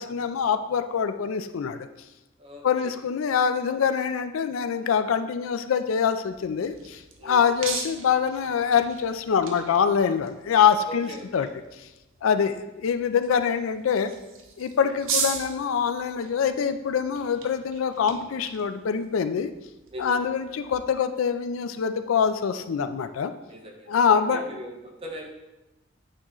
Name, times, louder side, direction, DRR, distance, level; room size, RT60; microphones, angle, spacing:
voice 1, 0.0-1.8 2.6-11.5 12.2-14.1 14.6-19.5 20.0-23.3 23.9-24.4, left 7 dB, 90° left, 10 dB, 0.4 m, -24 dB
voice 2, 2.4-3.0 7.2-7.6 10.8-11.5 12.2-12.6 14.7-15.0 16.4-16.5 19.9-20.6 23.5-25.3, equal, 30° right, 0 dB, 1.0 m, -41 dB
sound 1, 6.3-20.8, right 5 dB, 75° right, 0.7 m, -38 dB
8.6 x 3.1 x 3.8 m, 1.0 s
head